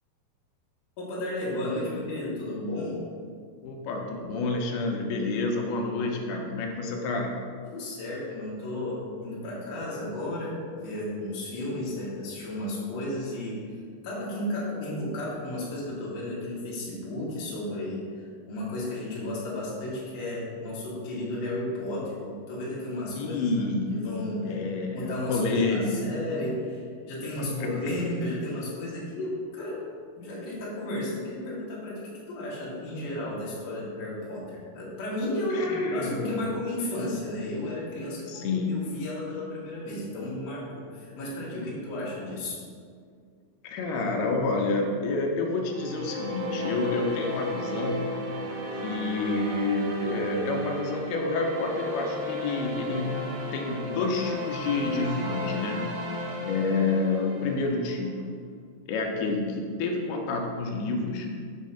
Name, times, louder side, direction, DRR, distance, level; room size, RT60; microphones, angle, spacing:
voice 1, 1.0-3.0 7.6-13.6 14.0-23.7 23.9-24.5 24.9-29.8 30.2-42.6, left 1 dB, 60° left, -7 dB, 1.8 m, -33 dB
voice 2, 3.6-7.3 23.2-26.1 27.4-28.0 35.5-36.5 38.3-38.8 43.6-48.1 48.8-53.2 53.5-55.9 56.4-58.4 58.9-61.3, left 3 dB, 80° left, 1 dB, 2.4 m, -29 dB
sound 1, 45.6-58.0, equal, 85° right, 2.7 m, -34 dB
6.3 x 2.7 x 5.6 m, 2.1 s
omnidirectional pair, 4.8 m